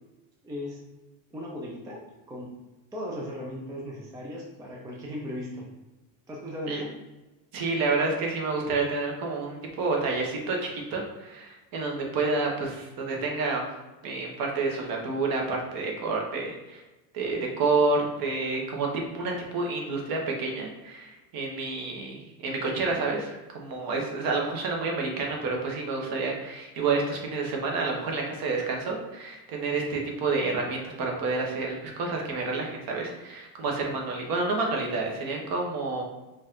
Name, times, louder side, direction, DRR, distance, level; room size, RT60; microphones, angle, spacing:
voice 1, 0.4-0.8 1.3-2.0 2.3-2.5 2.9-5.7 6.3-6.9, left 1 dB, 10° right, -3 dB, 0.4 m, -37 dB
voice 2, 7.5-13.6 14.0-16.8 17.1-18.9 19.1-36.0, right 3 dB, 45° right, 0 dB, 1.1 m, -29 dB
5.1 x 2.5 x 3.7 m, 1.1 s
cardioid pair, 145°, 49 cm